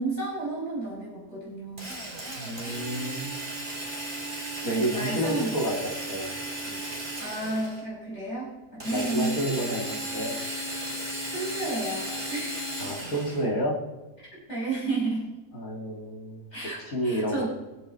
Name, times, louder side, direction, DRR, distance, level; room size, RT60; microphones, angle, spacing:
voice 1, 0.0-1.9 4.6-5.6 7.2-9.8 11.3-12.6 14.2-15.2 16.5-17.5, right 2 dB, 40° left, -7 dB, 6.1 m, -32 dB
Drill, 1.8-7.9 8.8-13.5, right 1 dB, 30° right, 3.3 m, -35 dB
voice 2, 2.4-3.4 4.6-6.3 6.7-6.8 8.8-10.4 12.8-13.7 15.5-16.5 16.9-17.5, equal, 55° left, 0 dB, 2.7 m, -30 dB
23.0 x 8.3 x 4.1 m, 1.1 s
omnidirectional pair, 1.7 m